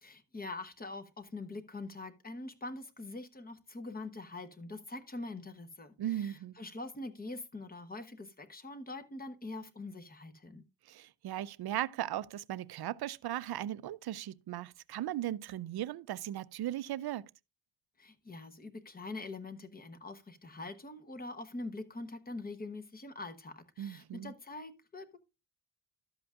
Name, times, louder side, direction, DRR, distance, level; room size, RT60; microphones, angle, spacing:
voice 1, 0.0-10.6 18.0-25.2, left 2 dB, 20° left, 1.0 m, -44 dB
voice 2, 6.0-6.6 10.9-17.3 23.8-24.3, right 12 dB, 60° right, 0.5 m, -37 dB
12.5 x 7.8 x 2.4 m
wide cardioid pair, 175°, 44 cm